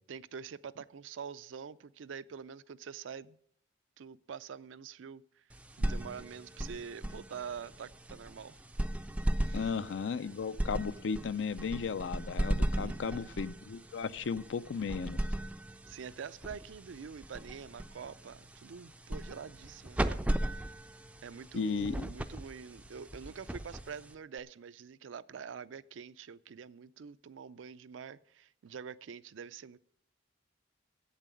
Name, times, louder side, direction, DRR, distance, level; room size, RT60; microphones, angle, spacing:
voice 1, 0.1-3.4 4.0-5.4 5.8-8.6 9.4-9.7 12.7-13.3 15.9-20.3 20.6-20.7 21.2-29.8, right 6 dB, 90° right, 0.4 m, -46 dB
sound 1, 5.5-24.4, right 1 dB, 5° right, 0.3 m, -37 dB
voice 2, 9.5-15.2 21.5-22.1, left 5 dB, 75° left, 0.4 m, -35 dB
8.3 x 7.4 x 8.1 m
head